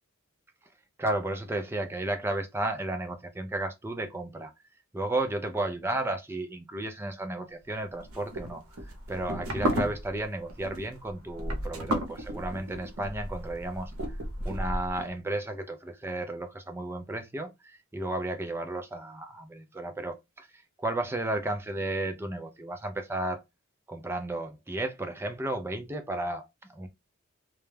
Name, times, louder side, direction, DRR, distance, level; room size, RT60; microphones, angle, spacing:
voice 1, 1.0-4.5 4.9-8.6 9.1-13.9 14.4-20.5 20.8-23.4 23.9-26.9, right 2 dB, 10° right, 0.3 m, -33 dB
sound 1, 8.0-15.0, equal, 80° right, 0.7 m, -33 dB
2.2 x 2.1 x 3.1 m
head